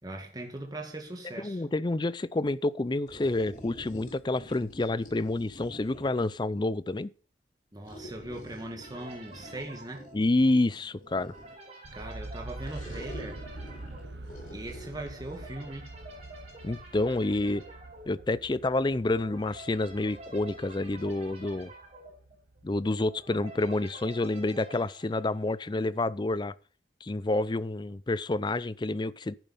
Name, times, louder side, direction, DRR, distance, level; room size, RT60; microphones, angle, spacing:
voice 1, 0.0-1.6 7.7-10.1 11.9-13.4 14.5-15.9, right 1 dB, 20° right, 2.0 m, -40 dB
voice 2, 1.4-7.1 10.1-11.3 16.6-17.6 18.1-21.7 22.6-26.5 27.0-29.4, left 2 dB, 25° left, 0.5 m, -28 dB
sound 1, 3.1-6.4 7.8-11.7 12.6-15.6, equal, 45° left, 3.8 m, -48 dB
sound 2, 8.8-26.0, right 1 dB, 40° right, 5.3 m, -49 dB
sound 3, 11.8-23.7, right 2 dB, 80° right, 0.9 m, -46 dB
10.5 x 9.0 x 5.5 m
head